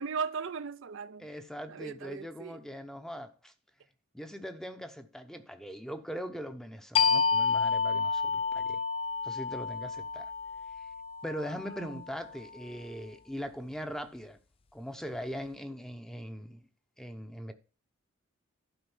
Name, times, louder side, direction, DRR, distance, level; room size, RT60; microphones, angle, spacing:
voice 1, 0.0-1.3 1.7-2.6 11.7-12.1, right 5 dB, 60° right, 0.5 m, -37 dB
voice 2, 1.2-3.5 4.1-8.8 9.2-10.3 10.8-10.9 11.2-14.4 14.7-16.7 17.0-17.5, equal, ahead, 0.8 m, -41 dB
sound 1, 7.0-12.3, left 5 dB, 25° left, 0.4 m, -30 dB
11.5 x 5.0 x 7.1 m
head